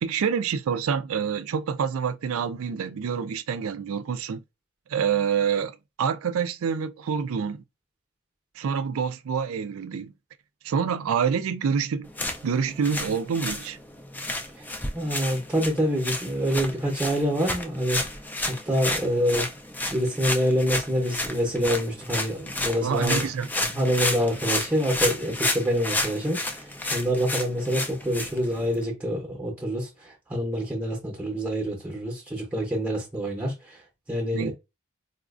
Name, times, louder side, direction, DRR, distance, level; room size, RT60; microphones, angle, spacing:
voice 1, 0.0-4.4 4.9-7.6 8.6-10.1 10.6-12.1 12.4-13.8 22.8-23.5 34.3-34.5, right 6 dB, 70° right, 0.4 m, -27 dB
sound 1, 12.0-28.8, left 2 dB, 10° left, 0.3 m, -31 dB
voice 2, 14.9-18.0 18.5-19.5 19.9-23.3 23.6-33.8 34.1-34.5, equal, 10° right, 0.8 m, -26 dB
4.0 x 2.4 x 2.4 m
head